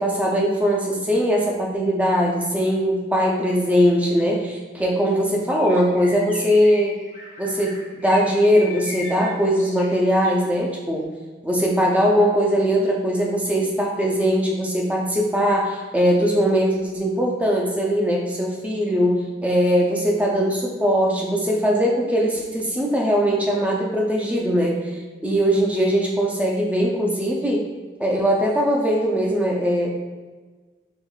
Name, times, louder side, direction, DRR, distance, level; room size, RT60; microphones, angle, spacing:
voice 1, 0.0-7.0 7.4-11.1 11.4-27.6 28.0-29.9, equal, 10° right, -2 dB, 0.5 m, -20 dB
Bird, 5.5-10.5, left 2 dB, 40° left, 0.5 m, -38 dB
5.3 x 3.0 x 2.3 m, 1.4 s
head